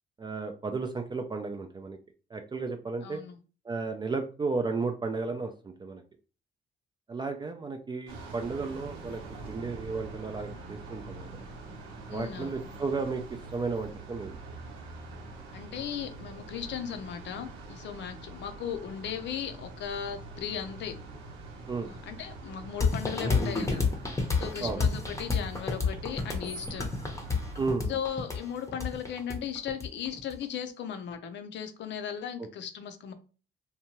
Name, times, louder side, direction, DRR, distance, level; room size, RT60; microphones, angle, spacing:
voice 1, 0.2-2.0 2.3-3.2 3.7-5.5 5.8-6.0 7.1-9.2 9.5-11.3 12.1-13.2 13.5-14.3 21.7-21.9 24.6-24.8 27.6-27.9, right 4 dB, 20° right, 0.3 m, -33 dB
voice 2, 3.0-3.4 12.1-12.7 15.5-20.9 21.8-23.9 24.3-26.9 27.9-33.1, left 8 dB, 65° left, 0.5 m, -37 dB
sound 1, 8.1-27.8, right 2 dB, 85° right, 0.8 m, -44 dB
sound 2, 22.8-30.4, left 4 dB, 15° left, 0.7 m, -30 dB
2.7 x 2.2 x 2.9 m
cardioid pair, 90°, 20 cm